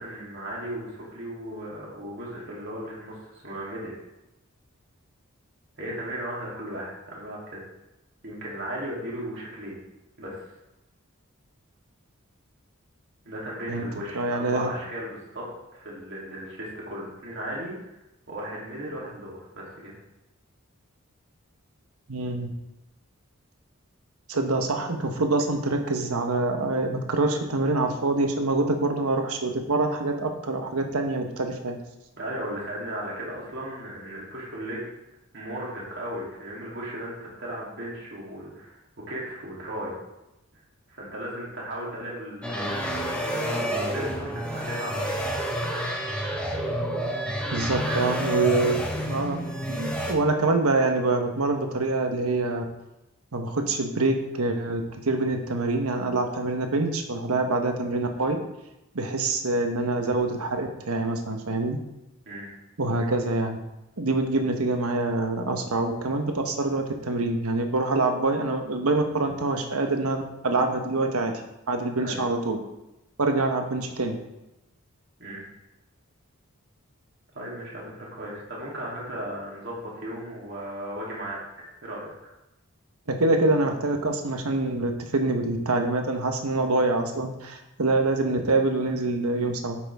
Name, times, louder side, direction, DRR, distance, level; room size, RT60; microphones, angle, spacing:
voice 1, 0.0-3.9 5.8-7.6 8.2-9.8 10.2-10.4 13.2-15.4 15.7-17.7 18.3-19.9 32.2-34.9 35.3-38.8 39.1-40.0 40.9-42.7 43.2-45.2 47.8-48.1 62.2-62.5 72.0-72.2 75.2-75.4 77.3-82.1, right 1 dB, 55° right, -5 dB, 3.2 m, -36 dB
voice 2, 14.1-14.7 22.1-22.5 24.3-31.8 47.5-49.4 49.7-52.6 53.3-58.4 58.9-61.8 62.8-63.6 64.0-71.3 71.7-72.6 73.2-74.2 83.1-89.8, right 2 dB, 85° right, 4 dB, 1.3 m, -25 dB
sound 1, 42.4-50.1, equal, 5° left, 1.3 m, -29 dB
9.5 x 8.1 x 3.6 m, 0.93 s
head